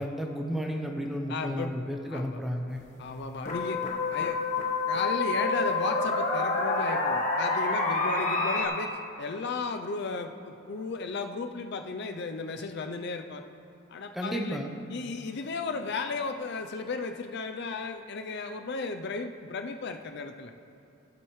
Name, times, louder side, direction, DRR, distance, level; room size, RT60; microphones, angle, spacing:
voice 1, 0.0-2.8 14.1-14.7, equal, ahead, 2 dB, 0.8 m, -32 dB
voice 2, 1.3-1.7 2.1-2.4 3.0-3.8 4.1-4.4 4.9-13.4 13.9-14.6 14.9-20.5, left 4 dB, 55° left, 6 dB, 0.5 m, -34 dB
sound 1, 2.8-2.9 3.5-8.7, left 3 dB, 40° left, 1.3 m, -28 dB
15.5 x 7.9 x 3.2 m, 2.9 s
head